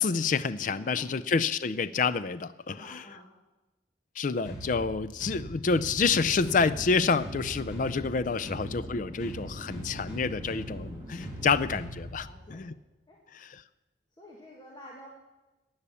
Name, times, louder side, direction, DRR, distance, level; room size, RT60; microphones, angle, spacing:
voice 1, 0.0-3.0 4.2-12.7 13.3-13.6, left 5 dB, 45° left, 13 dB, 0.4 m, -28 dB
voice 2, 0.7-1.2 2.7-3.3 8.3-8.6 12.2-12.7 13.1-13.2 14.2-15.1, equal, 25° left, -3 dB, 1.8 m, -50 dB
sound 1, 4.4-12.4, equal, 85° left, 5.3 m, -41 dB
Chatter / Fixed-wing aircraft airplane, 6.1-11.5, equal, 25° right, 2.7 m, -46 dB
15.5 x 9.5 x 7.1 m, 1.1 s
head